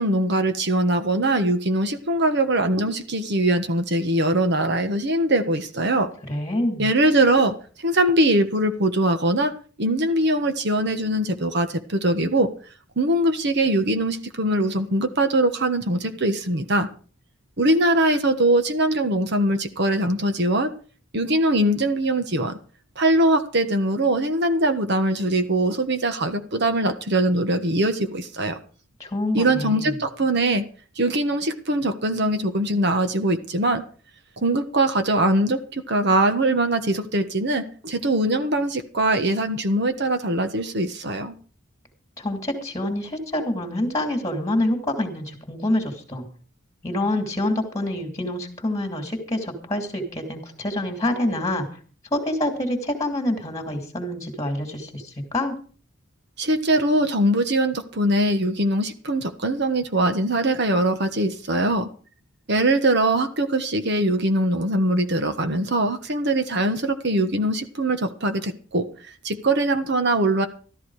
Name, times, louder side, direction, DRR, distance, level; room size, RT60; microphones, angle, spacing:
voice 1, 0.0-6.1 6.8-9.5 9.8-12.5 13.0-16.9 17.6-20.7 21.1-22.6 23.0-28.6 29.3-30.6 31.0-33.8 34.4-41.3 56.4-61.9 62.5-70.5, right 1 dB, 60° right, 8 dB, 1.4 m, -22 dB
voice 2, 6.3-6.9 29.0-29.9 42.2-46.2 46.8-51.7 52.1-55.5, left 1 dB, 15° left, 4 dB, 2.9 m, -26 dB
13.5 x 13.5 x 4.9 m, 0.40 s
head